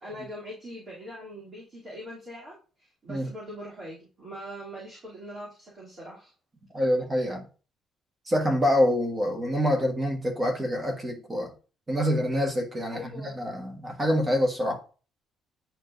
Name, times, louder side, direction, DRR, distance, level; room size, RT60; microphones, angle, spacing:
voice 1, 0.0-6.3 12.9-13.4, equal, 40° right, 3.0 m, -42 dB
voice 2, 6.7-7.4 8.3-11.5 11.9-14.8, equal, 20° right, 1.4 m, -26 dB
9.9 x 4.6 x 2.6 m
cardioid pair, 140°, 0 cm